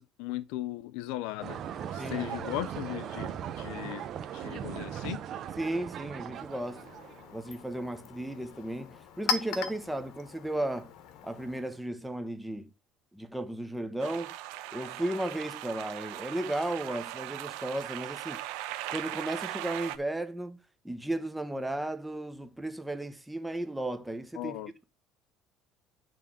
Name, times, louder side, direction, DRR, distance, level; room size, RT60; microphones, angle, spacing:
voice 1, 0.0-1.6 1.9-4.1 4.3-5.2 24.4-24.9, left 15 dB, 80° left, 0.4 m, -37 dB
sound 1, 1.4-7.3, right 9 dB, 40° right, 0.7 m, -39 dB
voice 2, 2.0-2.3 5.6-6.8 7.3-10.9 11.2-12.7 13.1-14.3 14.7-18.5 18.9-20.6 20.8-24.6, right 1 dB, 5° right, 0.8 m, -35 dB
Chink clink, 6.3-11.9, left 6 dB, 60° left, 1.1 m, -39 dB
sound 2, 14.0-20.0, right 14 dB, 85° right, 0.8 m, -39 dB
9.1 x 3.7 x 6.3 m
cardioid pair, 165°, 0 cm